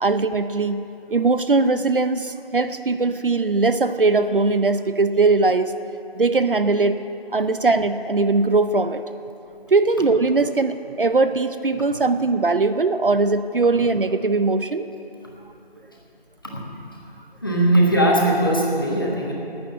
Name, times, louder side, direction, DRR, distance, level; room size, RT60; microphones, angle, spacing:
voice 1, 0.0-0.8 1.1-5.7 6.2-7.0 7.3-9.0 9.7-14.9, right 3 dB, 60° right, 11 dB, 0.5 m, -20 dB
voice 2, 17.4-19.3, right 1 dB, 20° left, -2 dB, 1.2 m, -19 dB
12.0 x 8.6 x 8.5 m, 2.7 s
figure-of-eight pair, 175°, 31 cm